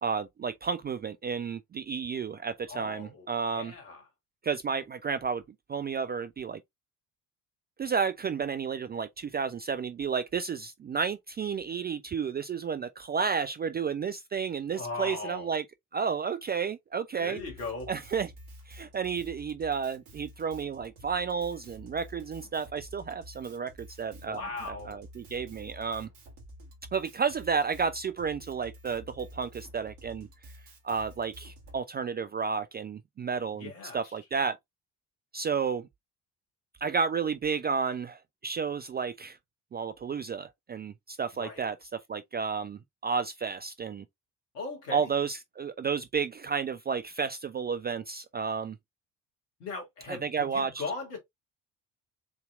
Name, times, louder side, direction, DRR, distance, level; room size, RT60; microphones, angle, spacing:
voice 1, 0.0-3.7 4.4-5.4 5.7-6.6 7.8-15.6 15.9-17.4 17.9-18.3 18.7-26.1 26.9-30.3 30.8-34.6 35.3-35.9 36.8-39.4 39.7-44.0 44.9-48.8 50.1-50.8, right 6 dB, 20° right, 0.4 m, -32 dB
voice 2, 2.7-3.3 3.5-4.0 14.7-15.5 17.2-17.9 24.2-25.0 33.5-34.0 41.4-41.7 44.5-45.1 49.6-51.2, left 3 dB, 80° left, 1.5 m, -38 dB
Drum kit, 17.4-31.8, equal, 65° right, 2.3 m, -50 dB
7.1 x 2.9 x 2.3 m
figure-of-eight pair, 45°, 46 cm